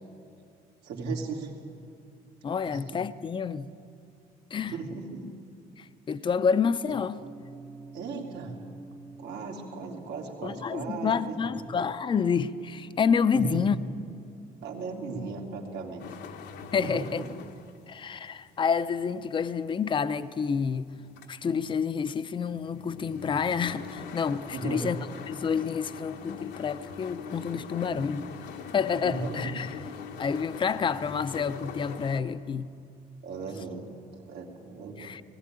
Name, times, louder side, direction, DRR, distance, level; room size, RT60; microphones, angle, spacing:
voice 1, 0.8-1.5 2.6-3.0 4.6-5.2 7.9-8.5 9.2-11.7 13.3-13.7 14.6-16.0 16.8-17.3 24.5-25.2 29.0-29.5 33.2-33.9 34.3-35.1, right 3 dB, 80° right, 2.9 m, -36 dB
voice 2, 2.4-3.7 4.5-4.7 5.8-7.2 10.4-13.8 16.7-17.2 17.9-20.9 21.3-25.0 25.3-28.4 28.7-29.7 30.2-32.7 35.0-35.2, left 6 dB, 30° left, 0.6 m, -28 dB
sound 1, 7.2-17.4, right 3 dB, 20° right, 0.9 m, -51 dB
sound 2, 16.0-32.2, left 6 dB, 80° left, 1.3 m, -42 dB
19.0 x 15.5 x 9.9 m
cardioid pair, 110°, 17 cm